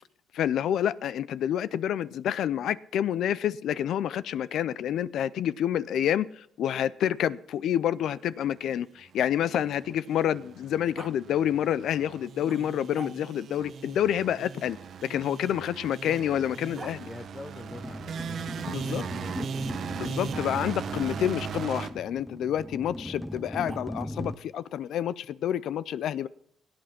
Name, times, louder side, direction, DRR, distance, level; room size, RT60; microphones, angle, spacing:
voice 1, 0.3-14.8 15.0-17.1 18.7-19.0 20.0-26.3, left 10 dB, 75° left, 0.5 m, -28 dB
Growling, 6.9-10.3 11.0-11.2 12.4-13.5 14.9-17.0 18.9-19.5 20.9-21.0 23.4-24.2, right 3 dB, 30° right, 1.0 m, -50 dB
sound 1, 9.5-21.9, right 6 dB, 60° right, 1.1 m, -38 dB
voice 2, 15.8-19.6, left 2 dB, 30° left, 1.4 m, -46 dB
sound 2, 17.7-24.4, left 1 dB, 5° left, 0.6 m, -38 dB
17.5 x 8.8 x 5.9 m
cardioid pair, 90°, 0 cm